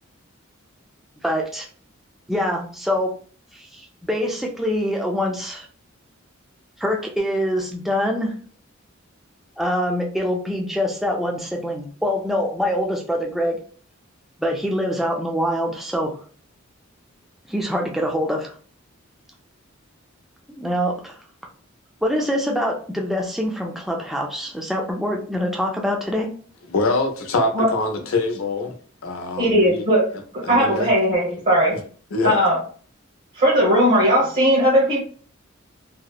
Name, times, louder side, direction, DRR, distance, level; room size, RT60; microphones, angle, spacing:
voice 1, 1.2-1.7 2.3-3.1 3.5-5.7 6.8-8.3 9.6-13.6 14.4-16.1 17.5-18.5 20.5-21.2 22.0-26.3, equal, ahead, 0.3 m, -24 dB
voice 2, 26.7-28.7 29.0-29.8 30.4-30.9 31.7-31.8 32.1-32.4, left 2 dB, 85° left, 0.6 m, -24 dB
voice 3, 29.4-30.0 30.3-31.7 32.2-32.6 33.4-35.0, equal, 40° right, 1.0 m, -18 dB
2.7 x 2.0 x 2.3 m
head